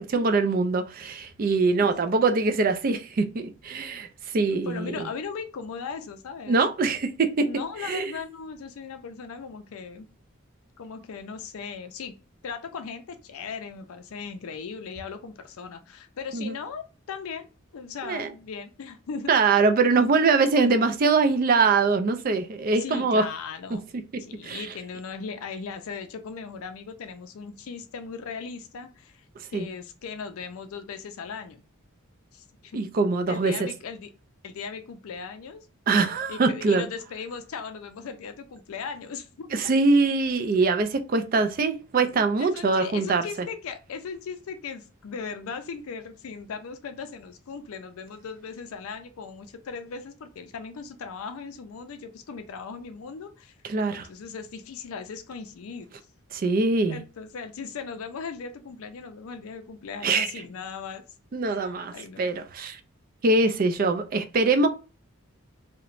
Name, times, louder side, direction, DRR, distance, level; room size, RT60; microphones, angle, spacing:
voice 1, 0.0-4.1 4.3-5.0 6.5-7.5 7.8-8.1 16.3-16.5 18.0-18.3 19.3-23.3 24.4-24.7 29.5-29.7 32.7-33.5 35.9-36.9 39.5-43.2 53.6-54.1 56.3-57.0 60.0-60.3 61.3-62.8 63.2-64.7, right 3 dB, 40° right, 0.3 m, -23 dB
voice 2, 4.5-6.6 7.4-10.1 10.8-12.1 12.4-17.5 17.7-19.4 22.7-23.9 24.2-29.2 29.5-31.6 32.3-32.8 33.3-34.1 34.4-35.7 36.3-39.5 42.4-53.5 53.9-55.9 56.9-61.0 61.4-62.3, left 5 dB, 75° left, 0.4 m, -38 dB
2.9 x 2.1 x 2.4 m
head